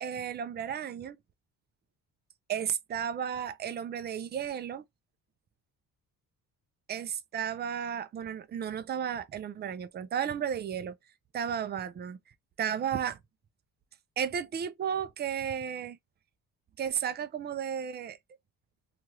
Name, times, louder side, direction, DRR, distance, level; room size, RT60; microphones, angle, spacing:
voice 1, 0.0-1.2 2.5-4.8 6.9-10.9 11.3-12.2 12.6-13.2 14.2-16.0 16.8-18.2, right 8 dB, 30° right, 0.3 m, -33 dB
2.8 x 2.4 x 2.9 m
cardioid pair, 95°, 38 cm